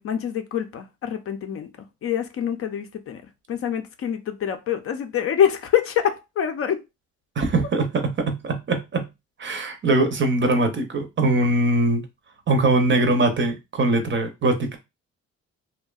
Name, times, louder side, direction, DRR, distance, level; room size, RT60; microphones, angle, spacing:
voice 1, 0.0-1.7 2.0-3.2 3.5-6.8, left 9 dB, 50° left, 0.5 m, -25 dB
voice 2, 7.4-9.1 9.4-12.0 12.5-14.8, right 2 dB, 40° right, 0.6 m, -22 dB
2.6 x 2.1 x 2.3 m
cardioid pair, 90°, 30 cm